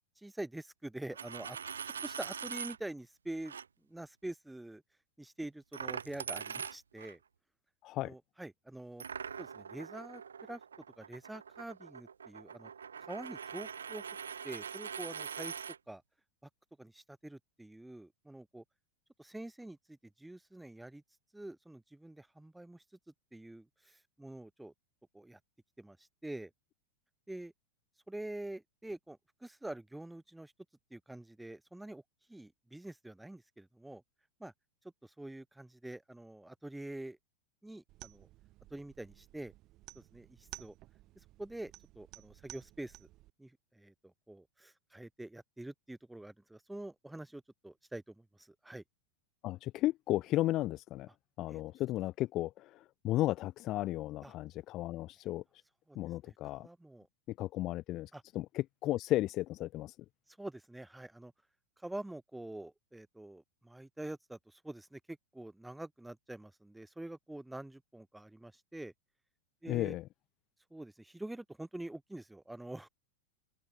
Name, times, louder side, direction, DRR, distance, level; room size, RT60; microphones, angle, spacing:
voice 1, 0.2-1.6 1.8-3.6 3.9-4.8 5.2-7.2 8.0-9.0 9.4-10.2 10.5-10.6 11.0-12.7 13.1-14.0 14.4-15.5 15.9-16.0 16.8-18.6 19.2-21.0 21.3-22.8 23.3-24.7 25.1-25.4 25.8-26.5 27.3-27.5 28.1-30.5 30.9-32.0 32.3-34.0 34.4-34.5 35.0-37.2 37.6-38.3 38.7-39.5 39.9-40.7 41.4-43.1 43.4-48.8 51.5-51.6 54.2-54.3 55.9-56.0 56.2-57.1 58.1-58.2 60.3-61.3 61.8-68.9 69.6-70.0 70.7-72.9, right 1 dB, 5° right, 1.3 m, -46 dB
Coin (dropping), 1.0-2.8 3.4-3.6 5.7-7.1 9.0-15.8, right 7 dB, 70° right, 0.6 m, -43 dB
voice 2, 7.8-8.1 49.4-51.1 51.4-52.8 53.0-55.4 56.0-56.7 57.4-58.1 58.3-59.9 69.7-70.0, left 16 dB, 35° left, 0.5 m, -34 dB
sound 1, 37.9-43.3, right 17 dB, 35° right, 3.7 m, -54 dB
open air
figure-of-eight pair, 90°, 0 cm